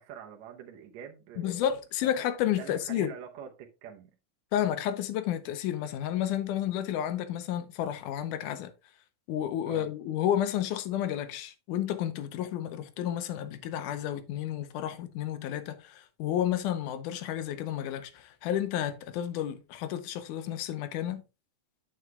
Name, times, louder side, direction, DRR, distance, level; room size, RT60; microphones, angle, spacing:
voice 1, 0.0-1.7 2.0-2.3 2.6-4.1 9.7-9.9, right 8 dB, 70° right, 1.9 m, -45 dB
voice 2, 1.4-3.2 4.5-8.7 9.3-21.2, left 11 dB, 85° left, 2.3 m, -31 dB
8.0 x 7.8 x 2.3 m
omnidirectional pair, 3.6 m